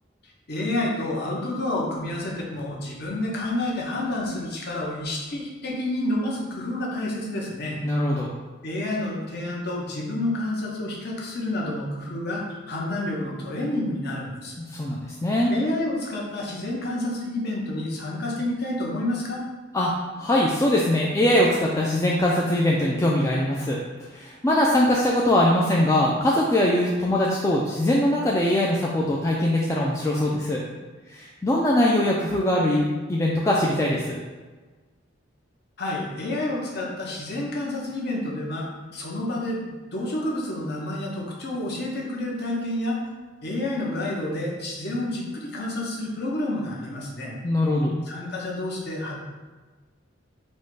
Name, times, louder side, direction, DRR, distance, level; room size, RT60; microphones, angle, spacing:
voice 1, 0.5-7.8 8.6-14.6 15.5-19.4 35.8-39.6 39.9-43.0 43.4-47.4 48.1-49.2, left 1 dB, 55° left, -3 dB, 0.9 m, -29 dB
voice 2, 7.8-8.3 14.6-15.5 19.7-23.8 24.1-30.6 31.1-34.2 47.4-47.9, left 1 dB, 15° left, -3 dB, 0.3 m, -22 dB
4.3 x 2.2 x 4.6 m, 1.3 s
head